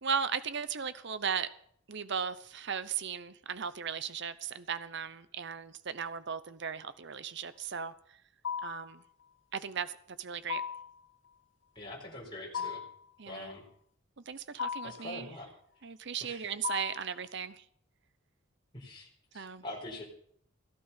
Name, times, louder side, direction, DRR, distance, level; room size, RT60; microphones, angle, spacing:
voice 1, 0.0-1.5 1.9-7.9 8.6-9.0 9.5-9.9 10.2-10.6 12.6-12.7 13.2-13.5 14.3-15.3 15.8-17.6 19.3-19.6, right 7 dB, 60° right, 0.8 m, -36 dB
sound 1, 8.4-8.9 10.5-11.0 12.5-13.0 14.6-15.1 16.6-17.1, left 7 dB, 60° left, 0.6 m, -36 dB
voice 2, 11.7-12.8 13.2-13.7 14.8-15.5 16.2-16.5 18.7-20.0, left 1 dB, 25° left, 4.2 m, -44 dB
16.5 x 11.5 x 5.7 m
head